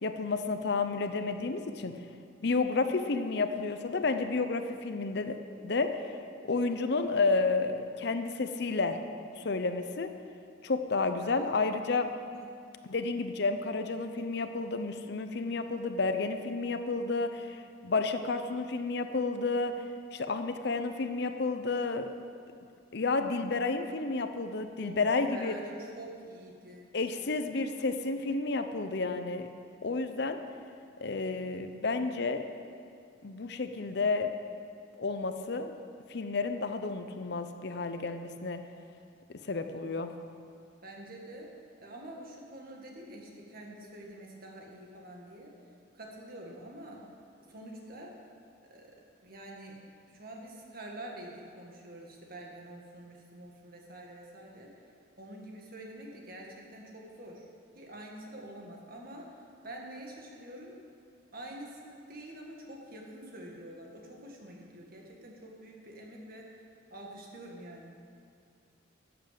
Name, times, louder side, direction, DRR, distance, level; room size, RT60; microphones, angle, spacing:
voice 1, 0.0-2.0 2.4-5.4 5.6-6.1 6.4-9.0 9.4-10.1 10.6-12.1 12.8-19.7 20.1-22.1 22.9-25.5 26.9-29.5 29.8-30.4 31.0-32.4 33.2-34.3 35.0-35.7 36.1-38.6 39.3-40.1, left 3 dB, 60° left, 8 dB, 0.7 m, -31 dB
voice 2, 24.8-26.9 40.8-41.6 41.8-45.5 45.9-47.0 47.5-48.2 48.7-48.9 49.2-54.7 55.2-57.5 57.8-60.8 61.3-66.6 66.9-68.0, right 1 dB, 50° right, -1 dB, 2.0 m, -46 dB
11.5 x 8.0 x 7.6 m, 2.4 s
head